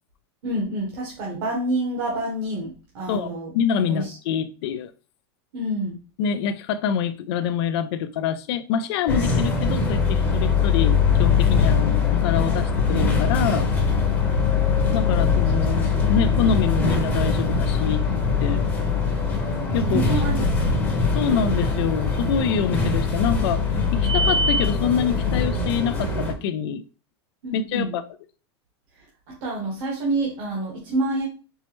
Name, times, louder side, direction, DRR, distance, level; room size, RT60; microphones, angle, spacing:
voice 1, 0.4-3.5 3.9-4.1 5.5-6.0 15.6-15.8 19.8-20.9 27.4-28.0 29.3-31.3, right 1 dB, 55° right, 1.2 m, -28 dB
voice 2, 3.1-4.9 6.2-13.7 14.9-18.0 18.4-18.6 19.7-20.2 21.2-26.8 27.5-28.0, left 7 dB, 65° left, 0.4 m, -26 dB
sound 1, 9.1-26.3, left 4 dB, 15° left, 0.8 m, -22 dB
4.4 x 2.1 x 3.0 m
supercardioid pair, 150°, 14 cm